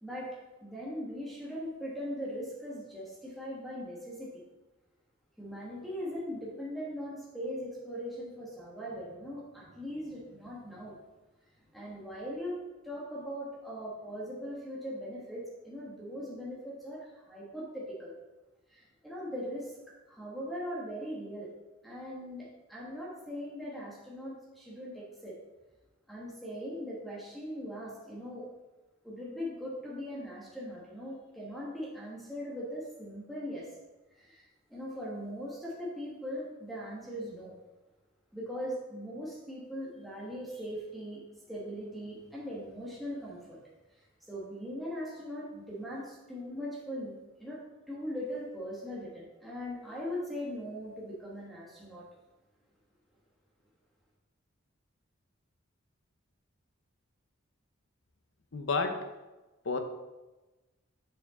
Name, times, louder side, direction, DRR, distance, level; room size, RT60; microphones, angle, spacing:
voice 1, 0.0-4.4 5.4-11.0 11.7-12.6 12.8-18.1 18.7-19.7 20.1-21.5 21.8-25.3 26.1-28.5 29.0-33.7 34.1-37.6 38.3-43.6 43.9-52.0, equal, ahead, -6 dB, 1.4 m, -40 dB
voice 2, 58.5-59.0 59.6-59.8, left 4 dB, 60° left, 7 dB, 0.7 m, -30 dB
7.3 x 5.6 x 3.7 m, 1.1 s
head